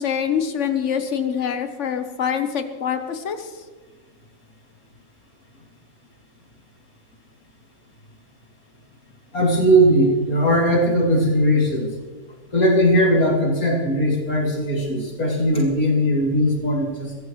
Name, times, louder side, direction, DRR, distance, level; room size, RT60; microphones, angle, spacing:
voice 1, 0.0-3.6, left 8 dB, 55° left, 8 dB, 1.4 m, -25 dB
voice 2, 9.3-11.9 12.5-17.2, equal, 75° left, -2 dB, 3.4 m, -19 dB
22.5 x 15.0 x 3.2 m, 1.4 s
omnidirectional pair, 1.5 m